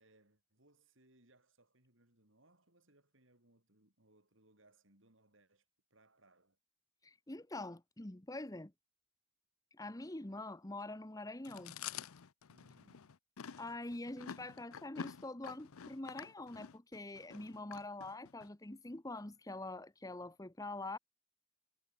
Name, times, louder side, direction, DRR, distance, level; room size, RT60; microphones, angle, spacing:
voice 1, 0.0-6.6 12.5-13.2, right 2 dB, 60° right, 6.2 m, -70 dB
voice 2, 7.0-8.7 9.7-11.8 13.6-21.0, left 2 dB, 15° left, 1.0 m, -45 dB
Chewing mastication, 11.4-18.5, left 7 dB, 85° left, 0.7 m, -49 dB
head